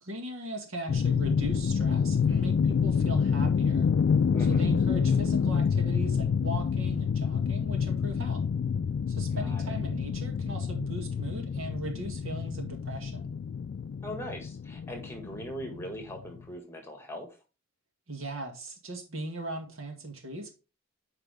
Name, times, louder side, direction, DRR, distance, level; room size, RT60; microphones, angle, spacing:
voice 1, 0.0-3.9 4.5-8.5 9.1-13.3 18.1-20.5, right 2 dB, 80° right, 1.9 m, -38 dB
sound 1, 0.9-16.4, left 6 dB, 55° left, 0.3 m, -28 dB
voice 2, 4.3-4.7 9.3-9.7 14.0-17.3, equal, 10° left, 1.7 m, -40 dB
9.0 x 4.8 x 3.4 m
head